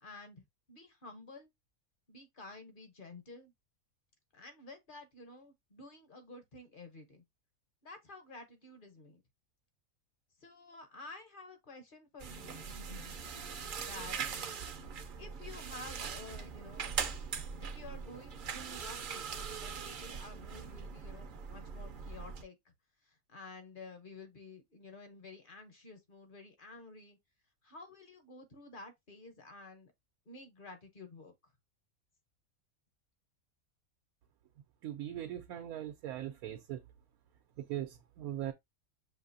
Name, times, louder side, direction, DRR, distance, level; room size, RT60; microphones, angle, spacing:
voice 1, 0.0-1.5 2.1-3.5 4.3-7.2 7.8-9.2 10.4-13.2 13.8-14.4 15.2-17.0 17.6-22.7 23.0-27.2 27.6-29.9 30.3-31.3, left 2 dB, 45° left, 0.8 m, -51 dB
sound 1, 12.2-22.4, right 6 dB, 55° right, 0.6 m, -41 dB
voice 2, 34.8-36.8 37.6-38.5, right 12 dB, 85° right, 1.1 m, -40 dB
6.3 x 2.7 x 2.6 m
omnidirectional pair, 1.5 m